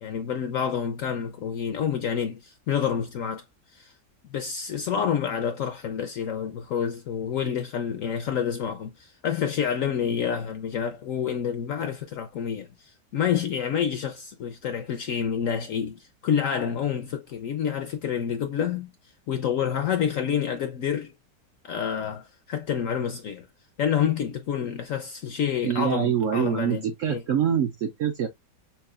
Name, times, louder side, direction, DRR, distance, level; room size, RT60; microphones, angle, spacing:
voice 1, 0.0-3.4 3.7-3.9 4.3-18.9 19.3-21.1 21.6-23.5 23.8-27.2, left 8 dB, 70° left, 0.8 m, -28 dB
voice 2, 25.6-28.3, right 8 dB, 70° right, 0.7 m, -25 dB
5.7 x 2.3 x 2.4 m
omnidirectional pair, 1.9 m